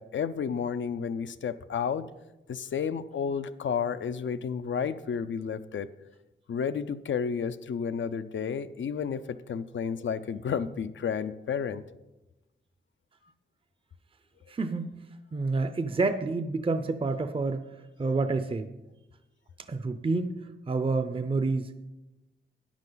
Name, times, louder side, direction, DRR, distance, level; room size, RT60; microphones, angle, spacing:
voice 1, 0.0-2.1 2.5-5.9 6.5-11.8, left 7 dB, 75° left, 12 dB, 0.5 m, -31 dB
voice 2, 14.5-14.9 15.3-17.6 18.0-18.7 19.7-21.7, right 3 dB, 25° right, 10 dB, 0.5 m, -28 dB
13.0 x 9.9 x 3.9 m, 1.0 s
wide cardioid pair, 125°, 20 cm